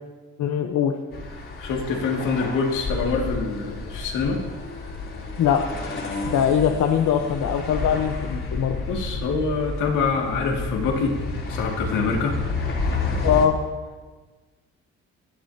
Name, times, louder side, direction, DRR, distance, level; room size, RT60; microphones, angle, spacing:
voice 1, 0.4-0.9 5.4-5.6 6.3-8.8 13.2-13.6, left 8 dB, 70° left, 3 dB, 1.0 m, -21 dB
sound 1, 1.1-13.5, left 3 dB, 45° left, 3.2 m, -30 dB
voice 2, 1.6-4.4 8.7-11.2 11.5-12.4, left 4 dB, 85° left, -1 dB, 2.3 m, -25 dB
17.5 x 11.5 x 2.9 m, 1.3 s
cardioid pair, 90°, 30 cm